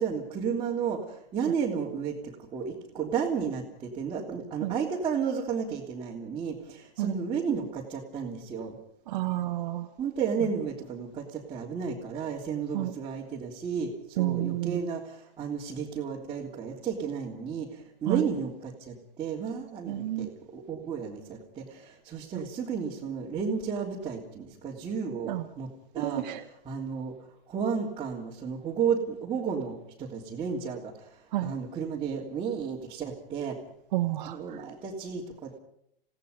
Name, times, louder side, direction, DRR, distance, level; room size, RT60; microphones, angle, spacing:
voice 1, 0.0-8.8 10.0-26.2 26.6-27.1 27.5-33.6 34.2-35.6, right 6 dB, 15° right, -4 dB, 3.2 m, -33 dB
voice 2, 9.1-9.9 12.7-12.9 14.2-14.8 18.1-18.2 19.9-20.3 25.2-25.4 26.0-26.4 31.3-31.5 33.9-34.6, right 15 dB, 45° right, 3 dB, 1.7 m, -30 dB
29.0 x 17.5 x 5.3 m, 0.74 s
hypercardioid pair, 120°, 30 cm